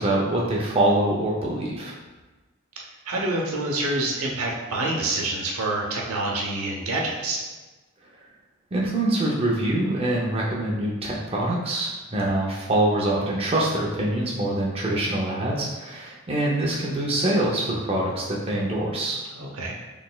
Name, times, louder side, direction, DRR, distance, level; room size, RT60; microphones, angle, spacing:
voice 1, 0.0-2.0 8.7-19.2, right 1 dB, 25° right, -4 dB, 0.4 m, -24 dB
voice 2, 3.1-7.4 19.3-19.7, right 2 dB, 85° right, -1 dB, 0.7 m, -27 dB
4.0 x 3.3 x 2.2 m, 1.2 s
head